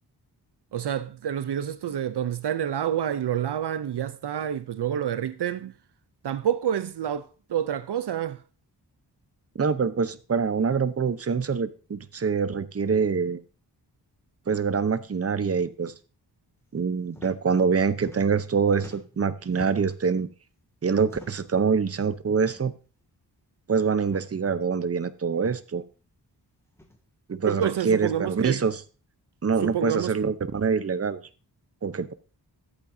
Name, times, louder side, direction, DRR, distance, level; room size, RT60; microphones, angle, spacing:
voice 1, 0.7-5.7 6.2-8.4 27.5-28.6 29.6-30.2, right 9 dB, 75° right, 0.6 m, -28 dB
voice 2, 9.5-13.4 14.5-15.9 16.7-20.3 20.8-22.7 23.7-25.8 27.3-28.8 29.4-31.2 31.8-32.1, right 5 dB, 35° right, 0.8 m, -25 dB
sound 1, 17.1-17.3 17.6-18.5 18.7-20.0 21.0-21.6 22.5-22.7 23.0-23.1 24.0-24.3 25.4-25.5 26.7-27.0 28.0-28.3, left 1 dB, 5° left, 2.1 m, -48 dB
14.0 x 8.6 x 2.7 m
wide cardioid pair, 90°, 41 cm